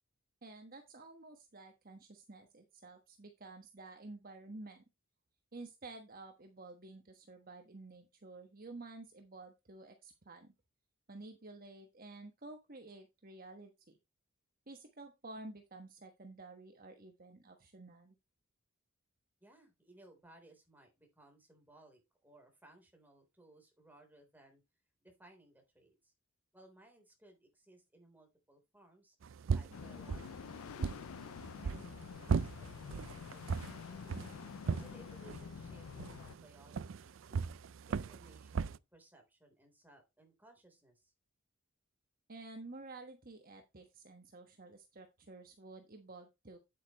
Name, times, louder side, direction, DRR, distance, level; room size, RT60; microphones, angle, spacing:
voice 1, 0.4-4.8 5.5-10.5 11.1-14.0 14.7-18.1 42.3-46.6, right 2 dB, 45° right, 5 dB, 1.3 m, -51 dB
voice 2, 19.4-24.6 25.0-26.1 26.5-29.2 29.5-31.3 31.6-34.2 34.8-37.5 37.9-41.1, right 1 dB, 10° right, 4 dB, 3.5 m, -62 dB
sound 1, 29.2-38.8, right 5 dB, 65° right, 0.4 m, -39 dB
sound 2, 29.7-36.3, left 6 dB, 80° left, 0.4 m, -48 dB
9.2 x 8.5 x 3.0 m, 0.23 s
head